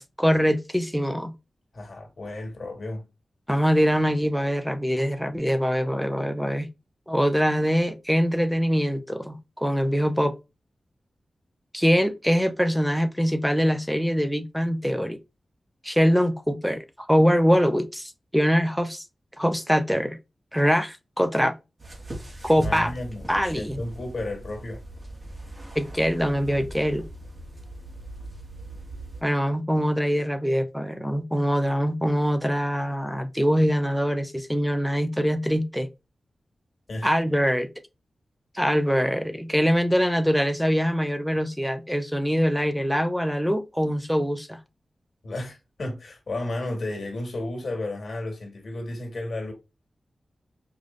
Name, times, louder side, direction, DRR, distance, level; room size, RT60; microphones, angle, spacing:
voice 1, 0.0-1.3 3.5-6.7 7.1-10.3 11.7-15.2 15.8-19.0 19.4-20.2 20.5-21.5 22.4-22.9 23.3-23.8 25.8-27.1 29.2-35.9 37.0-37.7 38.5-44.6, equal, ahead, 0.7 m, -23 dB
voice 2, 1.7-3.0 22.6-24.8 36.9-37.1 45.2-49.5, left 2 dB, 65° left, 1.8 m, -33 dB
sound 1, 21.8-29.2, right 1 dB, 30° right, 1.4 m, -40 dB
5.2 x 2.4 x 2.5 m
cardioid pair, 65°, 0 cm